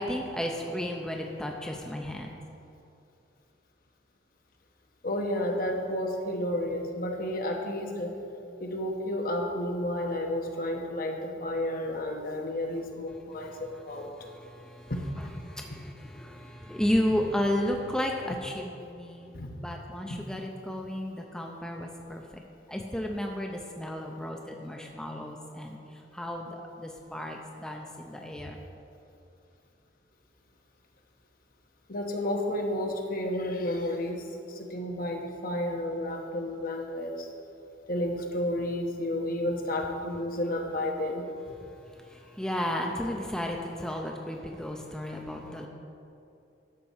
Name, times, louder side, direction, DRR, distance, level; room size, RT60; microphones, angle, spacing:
voice 1, 0.0-2.3 14.2-14.9 15.4-19.3 19.6-22.2 22.7-28.5 41.9-45.7, left 1 dB, 5° left, 1 dB, 0.5 m, -33 dB
voice 2, 5.0-8.2 8.6-14.1 14.9-15.1 19.3-19.5 31.9-37.3 37.9-41.2, left 1 dB, 55° left, 2 dB, 1.1 m, -31 dB
11.5 x 4.3 x 7.1 m, 2.7 s
head